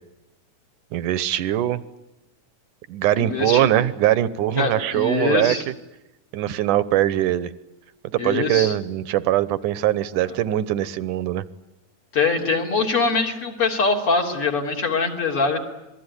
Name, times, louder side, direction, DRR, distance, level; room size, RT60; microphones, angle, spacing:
voice 1, 0.9-1.8 2.9-5.6 6.3-7.5 8.1-11.5, right 13 dB, 80° right, 16 dB, 2.6 m, -22 dB
voice 2, 3.2-3.7 4.5-5.6 8.2-8.7 12.1-15.7, left 4 dB, 45° left, 1 dB, 4.2 m, -23 dB
26.5 x 21.0 x 9.8 m, 0.94 s
omnidirectional pair, 3.6 m